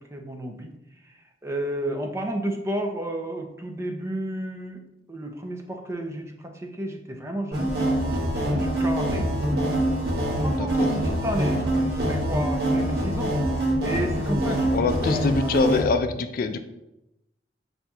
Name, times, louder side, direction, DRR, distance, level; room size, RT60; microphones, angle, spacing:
voice 1, 0.1-0.7 1.4-4.8 5.1-7.7 8.3-9.2 10.4-13.3 13.8-15.9, right 1 dB, 15° right, 3 dB, 0.5 m, -32 dB
sound 1, 7.5-15.8, right 1 dB, 65° right, 1.0 m, -24 dB
voice 2, 10.5-10.9 14.4-16.6, left 4 dB, 55° left, 8 dB, 0.3 m, -25 dB
7.3 x 2.7 x 2.3 m, 0.90 s
head